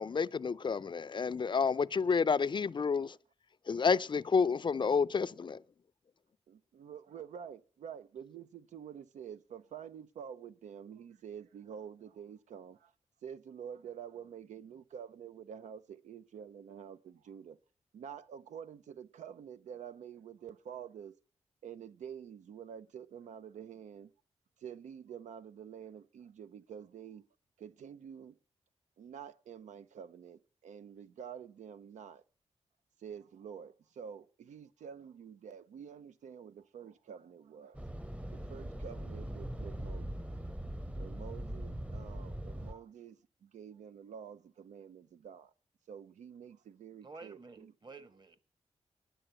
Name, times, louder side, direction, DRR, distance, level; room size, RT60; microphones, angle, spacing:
voice 1, 0.0-3.2 3.7-5.6, left 5 dB, 40° left, 0.5 m, -30 dB
voice 2, 6.5-12.9 13.2-17.6 17.9-21.1 21.6-24.1 24.6-27.2 27.6-28.4 29.0-32.2 33.0-37.8 38.2-40.4 40.9-45.5 45.9-47.7, right 8 dB, 85° right, 0.5 m, -48 dB
sound 1, 37.7-42.7, right 1 dB, 10° right, 0.8 m, -41 dB
voice 3, 47.0-48.4, right 3 dB, 35° right, 1.4 m, -51 dB
10.0 x 6.9 x 8.7 m
cardioid pair, 55°, 12 cm